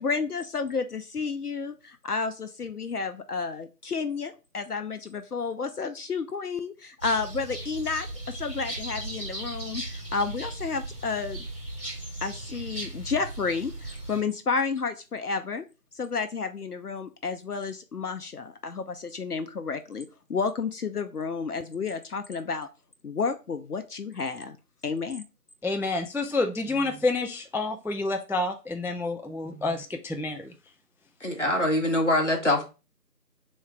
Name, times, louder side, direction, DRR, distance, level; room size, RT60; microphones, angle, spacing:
voice 1, 0.0-11.4 12.2-15.6 15.9-22.7 23.0-24.6 24.8-25.2, left 5 dB, 70° left, 9 dB, 0.5 m, -31 dB
sound 1, 7.0-14.2, right 2 dB, 35° right, 2.5 m, -37 dB
voice 2, 25.6-30.5, left 2 dB, 5° right, 5 dB, 0.3 m, -29 dB
voice 3, 31.2-32.7, left 1 dB, 50° left, 1 dB, 1.0 m, -24 dB
3.8 x 3.1 x 3.3 m, 0.30 s
figure-of-eight pair, 175°, 48 cm